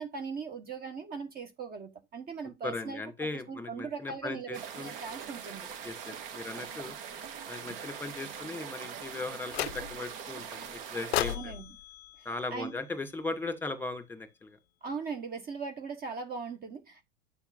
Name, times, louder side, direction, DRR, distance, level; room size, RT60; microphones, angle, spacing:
voice 1, 0.0-3.0 3.5-5.7 11.2-11.7 12.2-12.7 14.8-17.1, right 5 dB, 30° right, 1.3 m, -39 dB
voice 2, 2.6-4.9 5.8-6.9 7.5-11.5 12.2-14.6, left 3 dB, 5° left, 2.0 m, -38 dB
sound 1, 4.5-11.4, right 7 dB, 60° right, 1.7 m, -42 dB
sound 2, 9.5-10.2 11.1-13.4, left 14 dB, 70° left, 0.4 m, -36 dB
10.5 x 7.0 x 2.5 m
figure-of-eight pair, 90°, 32 cm